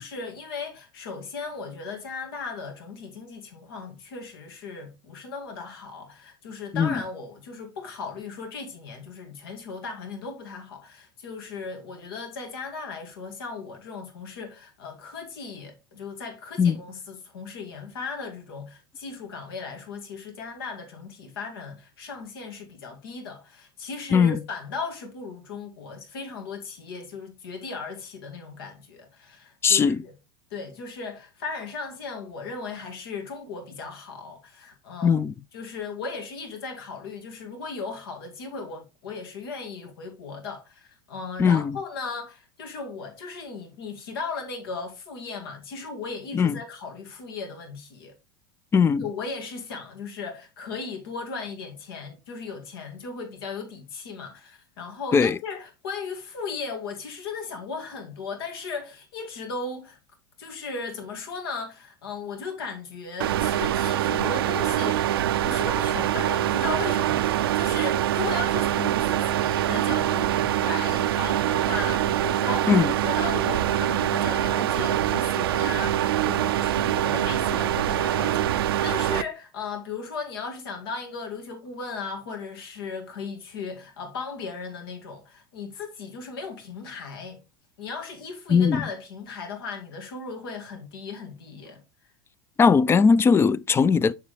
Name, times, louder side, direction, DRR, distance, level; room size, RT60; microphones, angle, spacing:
voice 1, 0.0-30.1 30.5-35.2 35.5-48.1 49.0-60.0 60.4-65.0 65.4-87.4 87.8-91.8, left 4 dB, 80° left, 2.2 m, -36 dB
voice 2, 29.6-30.0 35.0-35.3 41.4-41.8 46.3-46.6 48.7-49.1 55.1-55.4 72.7-72.9 88.5-88.9 92.6-94.1, left 6 dB, 20° left, 0.4 m, -19 dB
sound 1, 63.2-79.2, right 12 dB, 85° right, 0.4 m, -24 dB
6.9 x 6.0 x 3.3 m
hypercardioid pair, 100°, 12 cm